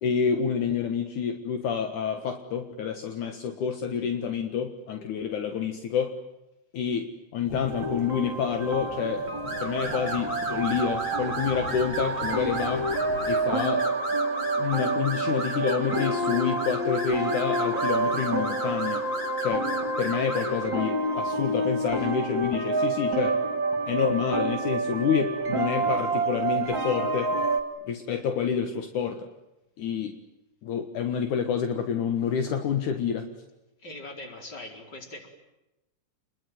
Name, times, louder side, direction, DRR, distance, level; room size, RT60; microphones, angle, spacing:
voice 1, 0.0-6.1 6.7-9.2 9.6-12.9 13.3-13.8 14.6-19.1 19.4-19.7 20.0-23.4 23.8-27.3 27.9-29.3 29.8-30.2 30.6-33.3, left 7 dB, 70° left, 6 dB, 3.0 m, -28 dB
Thunderstorm / Rain, 7.4-13.4, left 2 dB, 55° left, 5.3 m, -43 dB
sound 1, 7.7-27.6, right 2 dB, 35° right, 3.3 m, -28 dB
sound 2, 9.4-20.7, equal, 15° left, 5.7 m, -35 dB
voice 2, 33.8-35.3, left 2 dB, 30° left, 3 dB, 5.0 m, -41 dB
29.5 x 21.5 x 9.4 m, 0.95 s
omnidirectional pair, 3.7 m